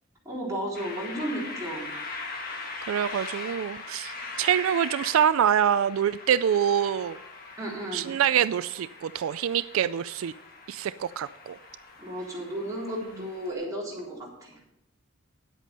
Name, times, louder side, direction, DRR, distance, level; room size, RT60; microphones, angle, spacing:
voice 1, 0.3-1.9 7.6-8.2 12.0-14.6, right 1 dB, 15° right, -5 dB, 3.7 m, -34 dB
sound 1, 0.7-13.5, left 3 dB, 45° left, 1.6 m, -41 dB
voice 2, 2.9-7.2 7.9-10.3 10.7-11.6, right 9 dB, 80° right, 14 dB, 0.3 m, -25 dB
10.5 x 8.2 x 5.4 m, 0.84 s
head